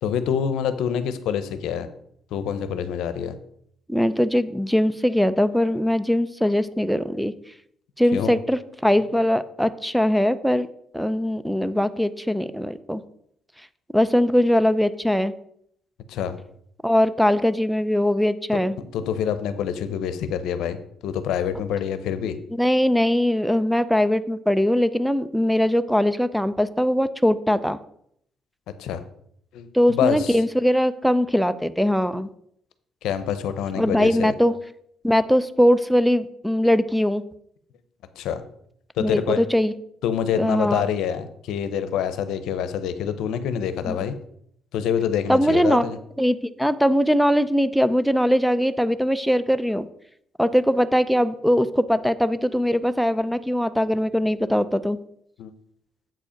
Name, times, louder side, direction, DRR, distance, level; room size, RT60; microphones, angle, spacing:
voice 1, 0.0-1.9 2.3-3.4 8.1-8.3 16.1-16.4 18.9-20.8 21.0-22.4 28.8-29.0 29.5-30.4 33.0-34.3 38.2-38.4 39.0-39.4 40.0-44.2 44.7-46.0 55.4-55.5, left 8 dB, 85° left, 12 dB, 0.7 m, -26 dB
voice 2, 3.9-7.3 8.0-10.7 10.9-13.0 13.9-15.3 16.8-18.7 22.5-27.8 29.7-32.3 33.8-34.5 35.0-37.2 39.0-39.7 40.3-40.9 43.9-44.0 45.3-45.8 46.2-49.9 50.4-55.0, equal, ahead, 14 dB, 0.4 m, -21 dB
7.6 x 5.0 x 5.1 m, 0.70 s
cardioid pair, 110°, 0 cm